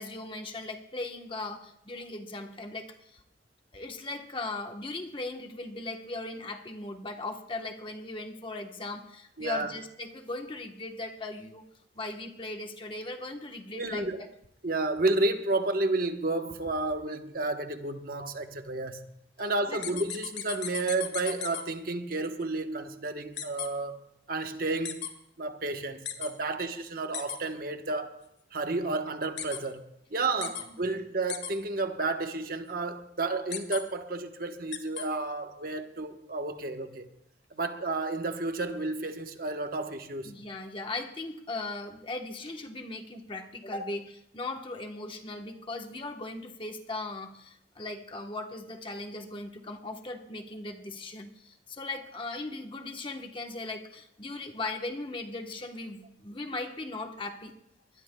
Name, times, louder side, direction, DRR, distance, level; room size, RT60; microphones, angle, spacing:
voice 1, 0.0-3.2 3.7-11.6 11.9-14.3 19.7-19.8 30.4-30.8 40.2-57.5, left 2 dB, 30° left, 1.0 m, -38 dB
voice 2, 9.4-9.7 13.7-14.2 14.6-19.0 19.4-24.0 24.3-25.0 25.4-28.1 28.5-37.1 37.5-40.3 43.8-43.9, right 2 dB, 50° right, 1.1 m, -31 dB
sound 1, 19.8-21.6 23.4-23.7 24.8-25.1 26.0-26.3 27.1-27.4 29.4-29.6 30.4-30.6 31.3-31.5 33.5-33.8 34.7-35.0, left 10 dB, 70° left, 1.8 m, -35 dB
23.0 x 20.0 x 2.2 m
head